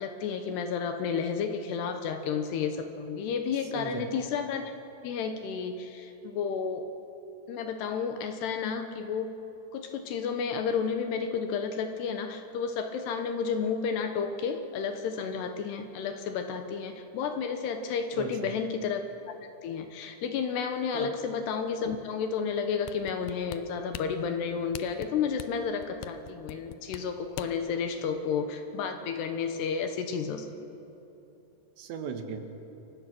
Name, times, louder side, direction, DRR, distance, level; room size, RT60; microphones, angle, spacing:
voice 1, 0.0-4.7 5.0-6.8 7.5-9.3 9.7-19.0 19.6-30.5, left 6 dB, 70° left, 6 dB, 3.0 m, -31 dB
voice 2, 3.7-4.1 18.1-18.5 20.9-21.1 31.8-32.4, right 7 dB, 75° right, 5 dB, 3.6 m, -37 dB
sound 1, 22.9-27.7 28.2-28.3, left 13 dB, 90° left, 2.1 m, -42 dB
29.0 x 23.5 x 6.2 m, 3.0 s
omnidirectional pair, 5.4 m